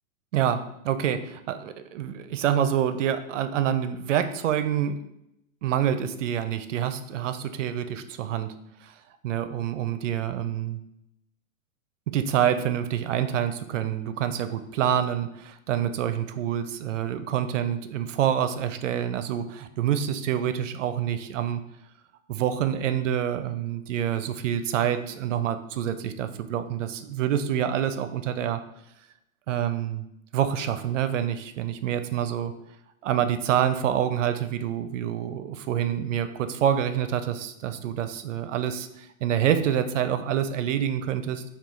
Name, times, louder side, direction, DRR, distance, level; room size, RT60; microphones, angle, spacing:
voice 1, 0.3-5.0 5.6-8.5 8.8-8.9 9.2-10.8 12.1-21.6 22.3-28.6 29.5-30.0 30.3-32.5 33.0-41.4, right 9 dB, 60° right, 10 dB, 0.5 m, -27 dB
5.5 x 2.3 x 3.1 m, 0.82 s
hypercardioid pair, 155°, 42 cm